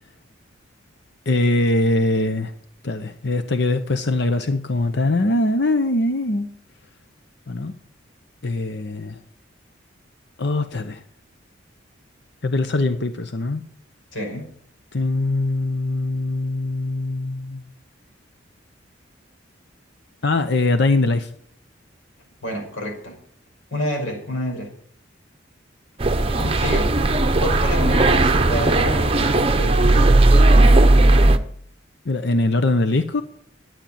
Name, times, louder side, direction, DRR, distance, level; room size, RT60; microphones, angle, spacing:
voice 1, 1.3-2.5 2.8-6.5 7.5-7.7 8.4-9.2 10.4-11.0 12.4-13.6 14.9-17.7 20.2-21.3 32.0-33.2, left 2 dB, 60° left, 9 dB, 0.8 m, -22 dB
voice 2, 14.1-14.5 22.4-23.2 23.7-24.7 26.2-27.0 27.4-30.1, equal, 80° left, 1 dB, 5.5 m, -28 dB
sound 1, 26.0-31.4, right 2 dB, 30° right, 0.8 m, -16 dB
12.0 x 9.0 x 8.6 m, 0.64 s
head